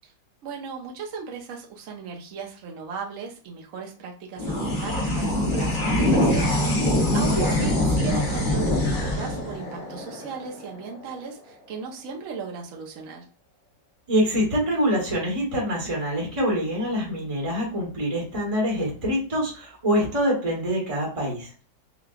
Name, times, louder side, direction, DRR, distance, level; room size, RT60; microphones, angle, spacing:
voice 1, 0.4-13.3, right 5 dB, 55° right, 0 dB, 1.1 m, -37 dB
sound 1, 4.4-11.1, left 1 dB, 35° left, 0.9 m, -24 dB
voice 2, 7.1-7.6 14.1-21.5, equal, 20° right, -3 dB, 1.2 m, -25 dB
5.8 x 2.3 x 2.3 m, 0.39 s
omnidirectional pair, 1.9 m